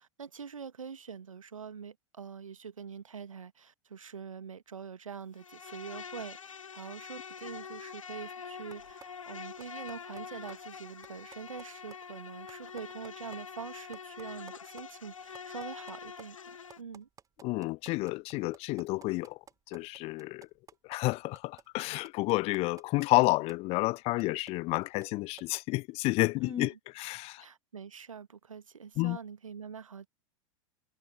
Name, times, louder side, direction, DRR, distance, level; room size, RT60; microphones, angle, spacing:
voice 1, 0.0-17.1 26.4-26.8 27.4-30.1, right 6 dB, 75° right, 1.4 m, -45 dB
Insect, 5.4-16.8, left 6 dB, 70° left, 1.1 m, -45 dB
sound 1, 8.7-9.1 9.4-10.2 10.5-10.6 10.8-11.6 11.9-12.0 12.3-13.4 13.7-13.8 13.9-14.8 15.1-23.5 24.0-25.1 25.4-25.5, right 7 dB, 20° right, 3.7 m, -53 dB
voice 2, 17.4-19.4 19.7-20.5 20.9-27.4 29.0-29.2, left 22 dB, 35° left, 0.8 m, -30 dB
figure-of-eight pair, 90°, 17 cm